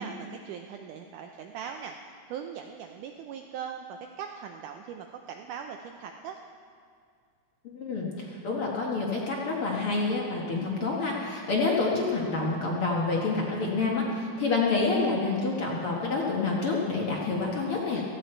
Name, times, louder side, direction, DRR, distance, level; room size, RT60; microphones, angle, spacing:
voice 1, 0.0-6.4, right 7 dB, 90° right, 4 dB, 1.7 m, -40 dB
voice 2, 7.6-18.0, left 3 dB, 55° left, -2 dB, 1.6 m, -28 dB
16.5 x 15.0 x 4.5 m, 2.2 s
omnidirectional pair, 4.4 m